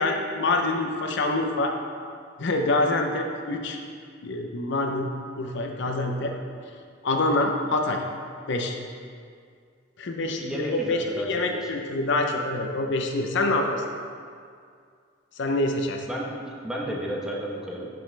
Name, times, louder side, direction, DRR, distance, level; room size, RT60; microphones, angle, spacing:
voice 1, 0.0-1.7 2.4-3.8 4.2-5.1 5.4-6.3 7.0-8.0 8.5-8.8 10.0-13.8 15.4-16.0, left 2 dB, 65° left, 3 dB, 0.7 m, -26 dB
voice 2, 10.4-11.7 16.1-17.9, equal, 5° right, -4 dB, 1.1 m, -32 dB
11.5 x 5.3 x 3.3 m, 2.2 s
head